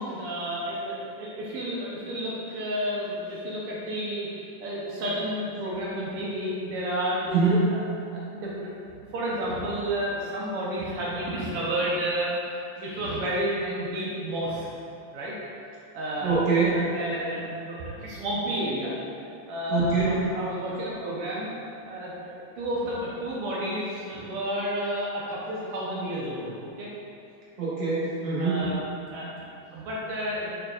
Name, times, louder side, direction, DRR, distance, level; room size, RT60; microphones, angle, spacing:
voice 1, 0.0-4.3 4.6-7.2 7.7-7.8 8.1-8.7 9.1-14.7 15.1-15.4 15.9-16.4 16.7-18.9 19.5-21.5 21.8-26.9 28.4-28.8 29.1-29.4 29.7-30.5, equal, 90° right, -6 dB, 1.2 m, -31 dB
voice 2, 7.2-7.7 16.2-16.9 19.7-20.2 27.6-28.7, right 4 dB, 45° right, -8 dB, 1.6 m, -24 dB
6.4 x 6.4 x 2.4 m, 2.5 s
omnidirectional pair, 3.7 m